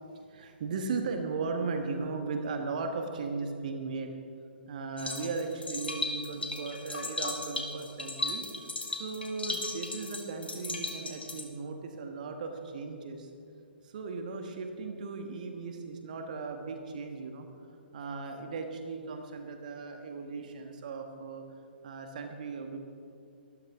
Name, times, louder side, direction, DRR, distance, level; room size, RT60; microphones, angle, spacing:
voice 1, 0.2-4.2 4.7-8.4 8.9-13.3 13.8-17.5 17.9-21.4 21.8-22.8, right 4 dB, 45° right, 5 dB, 1.4 m, -37 dB
sound 1, 5.0-11.4, left 2 dB, 70° left, 2.1 m, -36 dB
23.5 x 13.5 x 3.6 m, 2.5 s
figure-of-eight pair, 125°, 6 cm